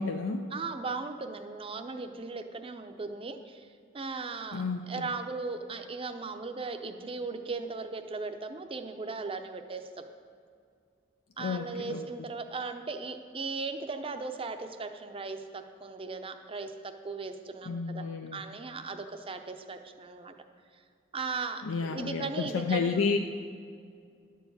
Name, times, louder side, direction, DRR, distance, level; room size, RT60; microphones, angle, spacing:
voice 1, 0.0-0.4 4.5-5.1 11.4-12.1 17.6-18.4 21.6-23.2, left 4 dB, 85° left, 4 dB, 0.5 m, -31 dB
voice 2, 0.5-3.7 3.9-9.8 11.4-18.0 18.3-20.3 21.1-23.1, right 4 dB, 30° right, 7 dB, 0.6 m, -37 dB
11.5 x 4.6 x 8.0 m, 2.3 s
head